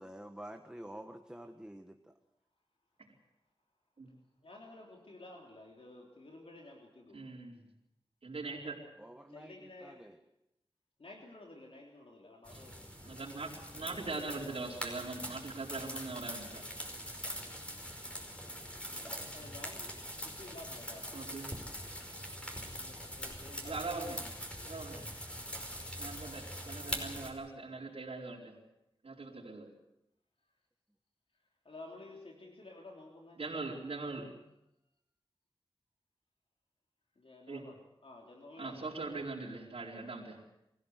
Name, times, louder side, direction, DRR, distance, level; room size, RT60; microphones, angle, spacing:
voice 1, 0.0-2.1 9.0-10.2, right 1 dB, 10° right, 5 dB, 1.5 m, -49 dB
voice 2, 4.4-7.3 9.3-10.1 11.0-12.8 13.7-14.8 19.3-21.4 22.5-24.0 24.6-24.9 31.7-33.4 37.2-38.9, left 2 dB, 75° left, 0 dB, 3.5 m, -53 dB
voice 3, 7.1-7.6 8.2-8.7 12.5-12.6 13.0-16.6 21.1-21.5 23.6-24.2 24.6-25.0 26.0-28.5 29.0-29.7 33.4-34.3 37.5-37.6 38.6-40.4, right 3 dB, 85° right, -4 dB, 4.7 m, -41 dB
sound 1, 12.4-27.3, equal, 10° left, 5.2 m, -43 dB
24.5 x 16.5 x 8.1 m, 0.85 s
wide cardioid pair, 75°, 10 cm